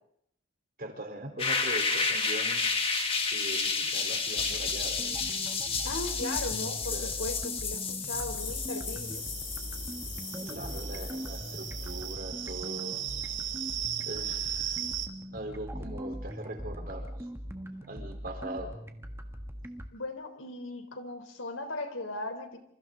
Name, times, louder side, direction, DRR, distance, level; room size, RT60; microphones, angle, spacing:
voice 1, 0.8-2.7 3.3-5.0 6.8-7.2 10.5-13.1 14.1-14.8 15.3-17.3 17.9-18.8, right 1 dB, 45° right, 4 dB, 4.0 m, -41 dB
sound 1, 1.4-12.1, left 4 dB, 30° left, 2.3 m, -32 dB
sound 2, 4.4-19.9, equal, 15° right, 1.5 m, -41 dB
voice 2, 5.8-9.2 19.9-22.6, left 2 dB, 90° left, 7 dB, 3.7 m, -37 dB
sound 3, 8.4-15.1, right 10 dB, 75° right, 1.8 m, -37 dB
28.0 x 27.0 x 3.9 m, 0.70 s
head